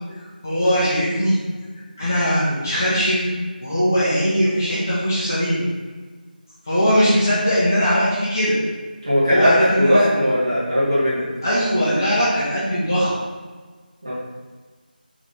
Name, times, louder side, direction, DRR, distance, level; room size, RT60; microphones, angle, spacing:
voice 1, 0.4-1.4 2.0-3.3 3.6-5.6 6.7-8.6 9.3-10.1 11.4-13.1, equal, 20° left, -11 dB, 1.2 m, -20 dB
voice 2, 9.0-11.2 14.0-14.1, equal, 35° right, -8 dB, 2.1 m, -18 dB
6.0 x 4.0 x 5.2 m, 1.4 s
figure-of-eight pair, 180°, 5 cm